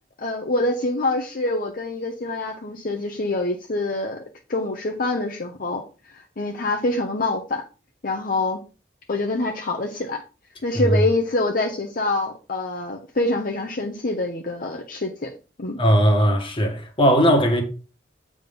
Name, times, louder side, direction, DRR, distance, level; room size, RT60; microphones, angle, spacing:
voice 1, 0.2-4.2 4.5-5.8 6.1-7.6 8.0-8.6 9.1-10.2 10.6-15.3 15.6-15.8, left 2 dB, 55° left, 0.8 m, -25 dB
voice 2, 15.8-17.6, equal, 30° left, 1.6 m, -18 dB
7.7 x 3.7 x 5.3 m
head